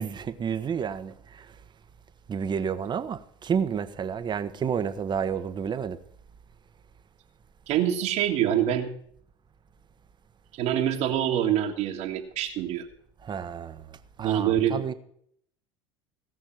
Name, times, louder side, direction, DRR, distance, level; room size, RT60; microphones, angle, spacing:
voice 1, 0.0-1.5 2.3-6.0 13.2-14.9, right 7 dB, 35° right, 1.2 m, -30 dB
voice 2, 7.7-8.9 10.6-12.9 14.2-14.9, right 10 dB, 55° right, 1.8 m, -25 dB
17.5 x 6.3 x 7.6 m
hypercardioid pair, 80°, 14 cm